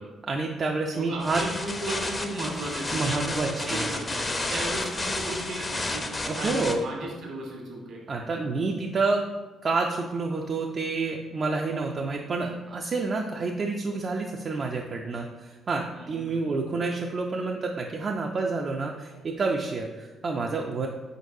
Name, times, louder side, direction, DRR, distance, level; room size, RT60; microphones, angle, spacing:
voice 1, 0.2-1.4 2.9-3.8 6.2-6.8 8.1-9.2 9.6-20.9, right 3 dB, 50° right, 1 dB, 0.4 m, -29 dB
voice 2, 0.9-6.0 6.4-8.0 15.9-16.5, right 2 dB, 70° right, -1 dB, 1.2 m, -35 dB
sound 1, 1.2-6.8, left 2 dB, 30° left, 0.5 m, -31 dB
4.5 x 3.9 x 2.6 m, 1.3 s
hypercardioid pair, 50°, 0 cm